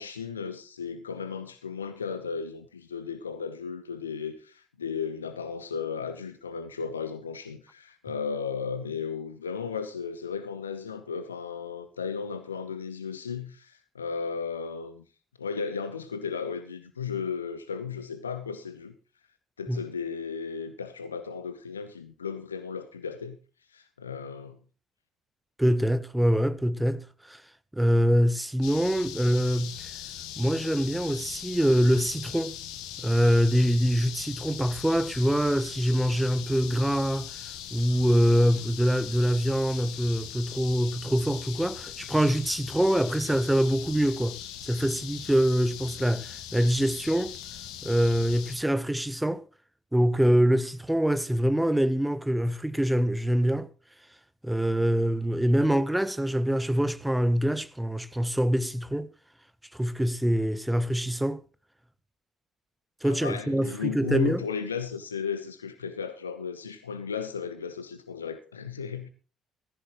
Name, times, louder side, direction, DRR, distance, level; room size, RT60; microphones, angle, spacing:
voice 1, 0.0-15.0 15.4-18.9 19.6-23.4 23.7-24.6 63.0-69.1, left 6 dB, 80° left, 0.7 m, -35 dB
voice 2, 25.6-27.4 27.7-29.9 30.4-32.6 33.0-37.3 37.7-44.4 44.6-47.3 47.8-49.4 49.9-53.7 54.4-59.1 59.7-61.4 63.0-64.4, equal, 5° right, 1.1 m, -24 dB
sound 1, 28.6-48.6, left 10 dB, 65° left, 1.4 m, -40 dB
16.5 x 14.5 x 3.1 m
figure-of-eight pair, 50°, 0 cm